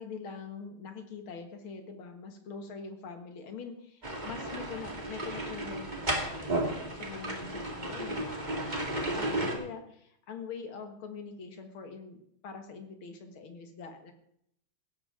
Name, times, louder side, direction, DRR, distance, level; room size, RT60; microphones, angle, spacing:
voice 1, 0.0-14.1, left 5 dB, 80° left, 5 dB, 2.4 m, -44 dB
sound 1, 4.0-9.5, right 1 dB, 20° right, 2.2 m, -34 dB
16.5 x 13.0 x 3.8 m, 0.72 s
omnidirectional pair, 2.3 m